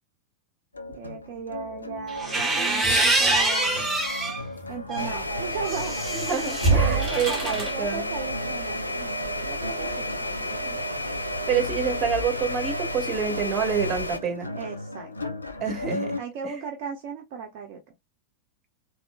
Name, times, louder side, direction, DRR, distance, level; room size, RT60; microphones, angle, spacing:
sound 1, 0.7-16.2, left 2 dB, 80° left, 0.5 m, -37 dB
voice 1, 0.9-3.9 4.7-6.0 6.7-10.8 14.5-15.3 15.8-17.8, right 6 dB, 45° right, 0.7 m, -36 dB
sound 2, 2.1-4.4 4.9-7.7, right 2 dB, 10° right, 1.3 m, -24 dB
sound 3, 5.0-14.2, equal, 90° right, 0.5 m, -31 dB
voice 2, 6.2-8.0 11.5-14.5 15.6-16.6, right 7 dB, 30° right, 1.1 m, -28 dB
3.7 x 2.7 x 2.3 m
figure-of-eight pair, 90°, 0 cm